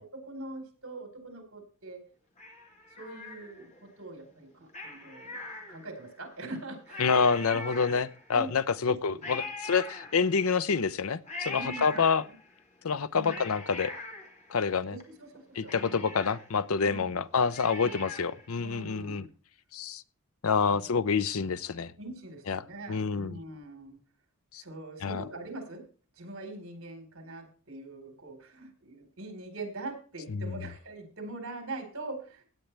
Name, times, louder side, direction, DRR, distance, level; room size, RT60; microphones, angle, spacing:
voice 1, 0.0-2.0 2.9-5.4 5.7-7.0 7.5-7.8 8.3-8.6 8.8-9.5 11.5-12.1 13.1-13.5 14.9-16.1 16.8-17.2 17.8-17.9 18.6-19.3 22.0-24.0 24.6-25.8 26.2-32.4, right 2 dB, 70° right, 4 dB, 4.2 m, -43 dB
Cat, 2.4-3.8 4.7-6.1 6.5-6.6 6.9-8.4 9.2-10.6 11.3-12.5 13.0-15.0 15.3-15.4 15.7-18.5 18.8-18.9, left 3 dB, 35° left, 2.6 m, -42 dB
voice 2, 7.0-12.2 12.8-13.9 14.5-14.9 15.6-19.3 19.7-20.0 20.4-21.9 22.5-23.4 24.5-24.6 25.0-25.2 30.3-30.6, left 5 dB, 80° left, 15 dB, 0.6 m, -28 dB
17.0 x 9.1 x 3.4 m, 0.38 s
head